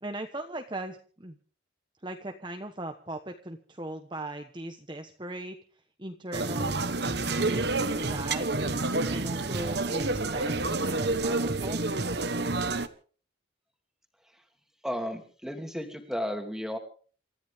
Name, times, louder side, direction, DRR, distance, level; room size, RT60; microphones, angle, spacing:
voice 1, 0.0-1.4 2.0-5.6 6.0-8.5 9.1-11.8, right 1 dB, 25° right, 5 dB, 1.2 m, -38 dB
sound 1, 6.3-12.9, right 3 dB, 55° right, 1.2 m, -29 dB
voice 2, 14.8-16.8, equal, 5° right, 5 dB, 2.7 m, -33 dB
28.5 x 14.0 x 3.6 m, 0.42 s
head